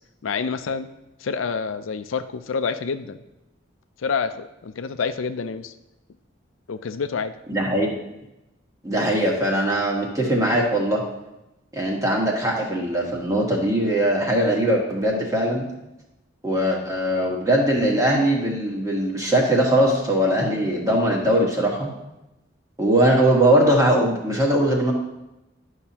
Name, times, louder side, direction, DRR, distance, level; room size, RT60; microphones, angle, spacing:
voice 1, 0.2-0.9 1.2-3.2 4.0-5.7 6.7-7.4, left 5 dB, 90° left, 10 dB, 0.5 m, -27 dB
voice 2, 7.5-8.0 8.8-11.0 11.7-15.7 16.4-21.9 22.8-24.9, right 1 dB, 15° right, -2 dB, 1.4 m, -21 dB
11.0 x 5.7 x 2.9 m, 0.94 s
head